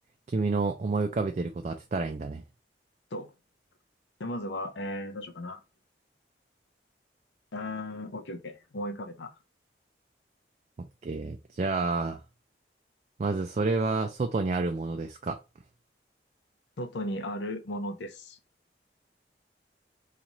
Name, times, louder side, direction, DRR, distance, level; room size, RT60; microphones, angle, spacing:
voice 1, 0.3-2.4 10.8-12.2 13.2-15.4, right 3 dB, 40° right, 0.3 m, -29 dB
voice 2, 4.2-5.6 7.5-9.3 16.8-18.4, left 1 dB, 85° left, 0.6 m, -36 dB
3.0 x 2.4 x 4.0 m
head